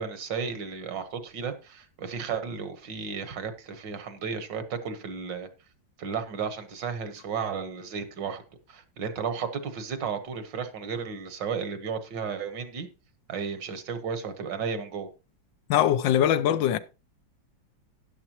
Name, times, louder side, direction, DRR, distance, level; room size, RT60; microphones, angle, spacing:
voice 1, 0.0-5.5 6.0-8.4 8.7-12.9 13.3-15.1, right 6 dB, 70° right, 1.8 m, -33 dB
voice 2, 15.7-16.8, left 10 dB, 80° left, 1.4 m, -22 dB
12.5 x 9.6 x 2.9 m
omnidirectional pair, 2.0 m